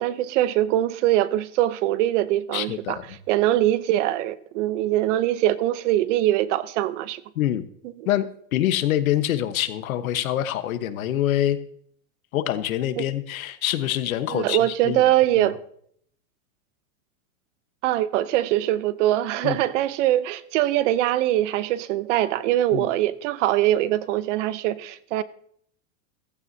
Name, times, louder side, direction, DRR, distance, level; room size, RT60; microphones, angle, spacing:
voice 1, 0.0-3.0 3.3-7.2 13.0-13.1 14.3-15.6 17.8-25.2, right 14 dB, 60° right, 0.8 m, -22 dB
voice 2, 2.5-3.2 7.3-7.7 8.0-11.6 12.3-15.0 15.4-15.5 19.4-19.6 22.7-22.9, left 12 dB, 90° left, 1.3 m, -25 dB
15.0 x 14.5 x 2.8 m
supercardioid pair, 140°, 40 cm